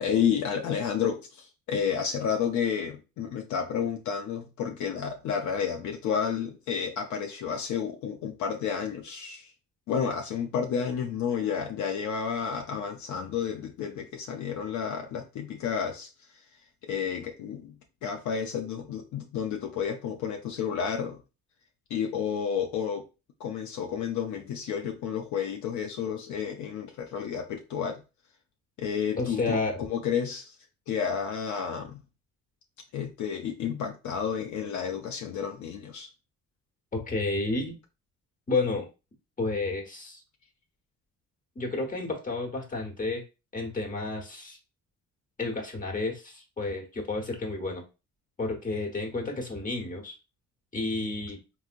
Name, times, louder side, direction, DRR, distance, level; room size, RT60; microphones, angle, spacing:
voice 1, 0.0-9.5 9.9-16.1 16.8-17.8 18.0-21.2 21.9-23.1 23.4-28.0 28.8-30.6 30.9-32.0 32.9-36.1, left 7 dB, 70° left, 0.5 m, -31 dB
voice 2, 29.2-29.8 36.9-37.7 38.5-38.9 39.4-40.2 41.5-43.2 43.5-44.6 45.4-47.8 48.4-50.2 50.7-51.4, left 3 dB, 25° left, 1.1 m, -31 dB
3.6 x 2.1 x 2.5 m
cardioid pair, 90°, 30 cm